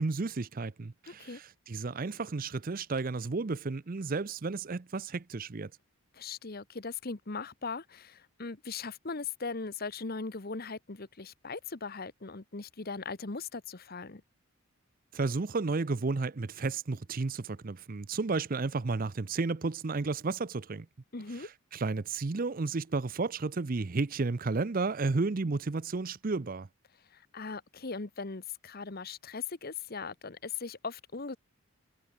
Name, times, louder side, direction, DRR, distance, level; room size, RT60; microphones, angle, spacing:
voice 1, 0.0-5.7 15.1-20.9 21.4-26.7, right 3 dB, 40° right, 0.6 m, -32 dB
voice 2, 1.1-1.4 6.1-14.2 21.1-21.5 27.1-31.4, left 4 dB, 45° left, 1.1 m, -39 dB
head